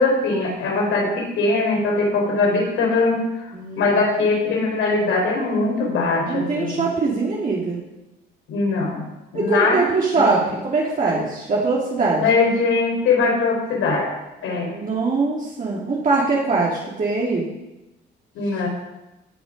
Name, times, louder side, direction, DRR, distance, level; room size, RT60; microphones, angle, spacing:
voice 1, 0.0-3.5 3.7-6.8 8.5-9.1 9.3-9.8 10.3-10.4 12.2-14.1 14.4-14.7 18.3-18.7, left 3 dB, 85° left, 0 dB, 4.1 m, -21 dB
voice 2, 3.5-3.9 6.3-7.8 9.3-12.2 14.7-17.5, right 3 dB, 45° right, -4 dB, 2.5 m, -22 dB
18.0 x 6.1 x 5.3 m, 0.97 s
cardioid pair, 90°, 20 cm